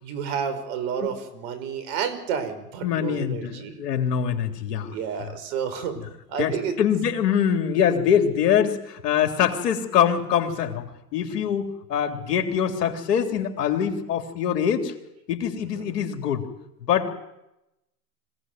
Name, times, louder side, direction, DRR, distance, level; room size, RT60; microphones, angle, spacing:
voice 1, 0.0-3.8 4.9-6.0 6.3-6.8 15.6-15.9, right 7 dB, 60° right, 12 dB, 5.3 m, -30 dB
voice 2, 2.8-5.0 6.4-14.9 15.3-16.4 16.8-17.1, left 8 dB, 75° left, 4 dB, 3.7 m, -24 dB
25.5 x 17.5 x 9.4 m, 0.90 s
hypercardioid pair, 100°, 48 cm